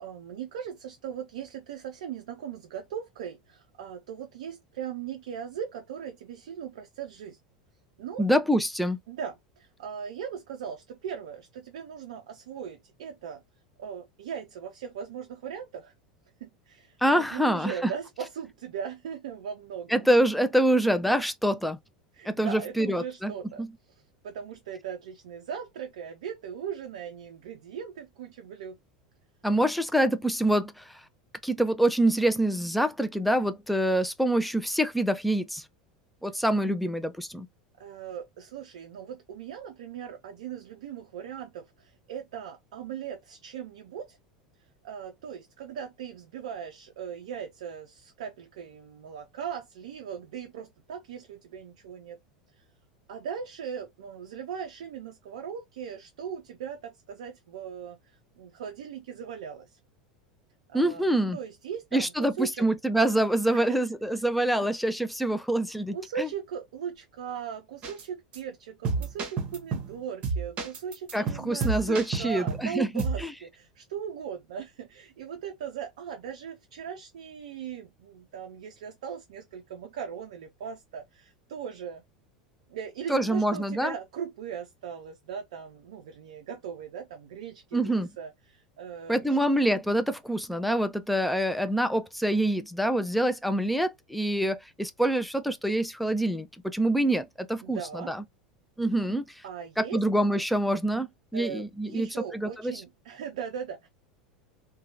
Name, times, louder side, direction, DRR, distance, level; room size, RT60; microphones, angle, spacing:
voice 1, 0.0-7.4 8.0-8.2 9.1-13.4 13.8-15.9 16.4-20.1 22.1-23.6 24.2-28.8 36.2-36.3 37.8-44.2 44.8-52.2 52.6-52.7 53.1-59.8 60.7-61.1 61.3-62.7 63.5-63.8 64.1-64.2 64.5-64.7 65.9-82.0 82.7-89.4 97.6-98.1 99.4-100.0 101.3-103.9, right 8 dB, 60° right, 0.4 m, -39 dB
voice 2, 8.2-9.0 17.0-17.9 19.9-21.8 22.3-23.3 23.6-23.7 29.4-30.9 31.4-35.6 36.2-37.5 60.7-61.4 61.9-66.3 71.1-73.3 83.1-83.9 87.7-88.1 89.1-98.2 98.8-99.2 99.8-101.1 101.3-102.7, right 1 dB, ahead, 0.4 m, -26 dB
sound 1, 67.8-68.0 68.3-68.4 68.8-69.9 70.2-72.7 73.0-73.2, right 4 dB, 35° right, 0.8 m, -30 dB
2.7 x 2.2 x 2.5 m
figure-of-eight pair, 80°, 4 cm